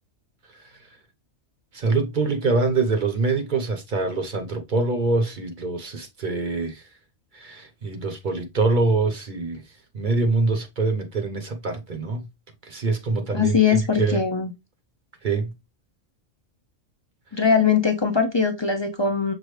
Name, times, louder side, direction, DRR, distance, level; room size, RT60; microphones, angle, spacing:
voice 1, 1.7-6.8 7.3-9.6 9.9-12.3 12.6-14.2 15.2-15.5, right 3 dB, 45° right, 0.9 m, -24 dB
voice 2, 13.3-14.5 17.3-19.3, left 6 dB, 40° left, 0.4 m, -21 dB
6.2 x 2.6 x 3.1 m
omnidirectional pair, 1.3 m